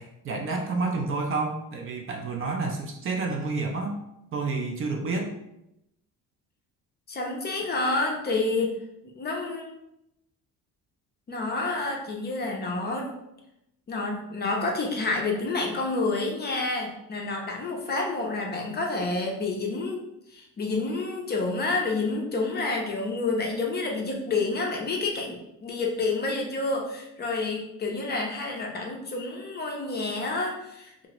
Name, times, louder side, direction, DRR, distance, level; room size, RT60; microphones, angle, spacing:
voice 1, 0.0-4.0 4.3-5.3, right 3 dB, 40° right, 2 dB, 0.4 m, -29 dB
voice 2, 7.1-8.8 9.1-9.7 11.3-13.1 13.9-20.0 20.3-31.1, left 3 dB, 30° left, 0 dB, 0.5 m, -29 dB
2.8 x 2.4 x 2.9 m, 0.84 s
cardioid pair, 135°, 34 cm